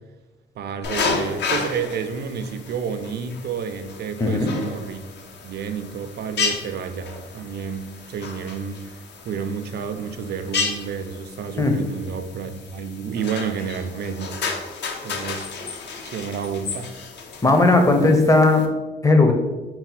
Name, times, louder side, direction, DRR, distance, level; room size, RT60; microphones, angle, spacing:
voice 1, 0.6-5.1 5.4-9.0 9.2-14.4 15.0-15.5 16.0-16.9, right 6 dB, 55° right, 9 dB, 0.4 m, -30 dB
sound 1, 0.8-18.7, left 4 dB, 60° left, 0.6 m, -32 dB
voice 2, 4.2-4.5 11.6-11.8 17.4-18.6 19.0-19.3, left 2 dB, 15° left, 4 dB, 0.6 m, -16 dB
4.0 x 2.1 x 4.1 m, 1.1 s
cardioid pair, 90°, 20 cm